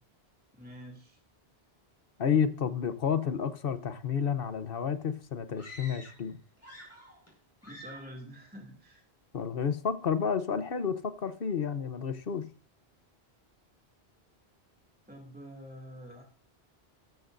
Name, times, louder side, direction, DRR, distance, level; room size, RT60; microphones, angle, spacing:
voice 1, 0.6-1.2 7.6-9.0 15.0-16.2, equal, 10° right, 0 dB, 2.5 m, -47 dB
voice 2, 2.2-6.4 9.3-12.5, left 7 dB, 60° left, 11 dB, 1.1 m, -30 dB
sound 1, 5.5-6.3 6.6-7.3 7.6-8.2, equal, 15° left, 5.5 m, -49 dB
13.5 x 13.5 x 2.6 m, 0.40 s
omnidirectional pair, 1.1 m